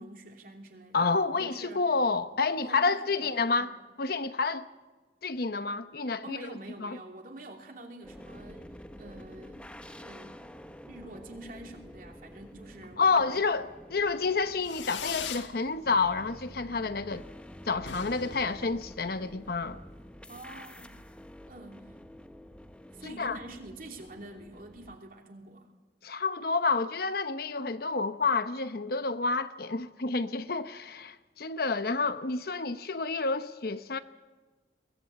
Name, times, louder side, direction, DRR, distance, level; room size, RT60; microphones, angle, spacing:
voice 1, 0.0-1.0 1.3-1.8 2.6-3.7 6.2-9.7 10.0-10.4 10.9-13.4 20.3-21.1 21.5-22.0 22.9-25.7, right 1 dB, 50° right, 3.0 m, -47 dB
voice 2, 0.9-3.7 4.0-4.7 5.2-6.4 6.8-7.0 13.0-17.2 17.7-19.8 23.0-23.4 26.0-34.0, left 4 dB, 55° left, 0.9 m, -29 dB
sound 1, 8.0-25.0, equal, 5° left, 0.8 m, -49 dB
Fireworks, 14.6-15.5 15.9-16.4 16.7-16.8 17.1-17.2 17.4-17.5 17.8-19.4, left 7 dB, 90° left, 1.5 m, -40 dB
22.5 x 17.5 x 8.5 m
head